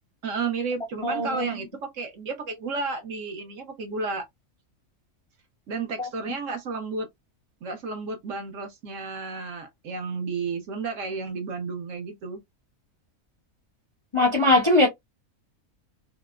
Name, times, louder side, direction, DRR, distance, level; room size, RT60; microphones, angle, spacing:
voice 1, 0.2-4.2 5.7-7.1 7.6-12.4, right 4 dB, 65° right, 1.2 m, -32 dB
voice 2, 1.0-1.6 6.0-6.1 14.1-14.9, left 2 dB, 35° left, 0.5 m, -21 dB
3.9 x 2.1 x 2.3 m
omnidirectional pair, 1.4 m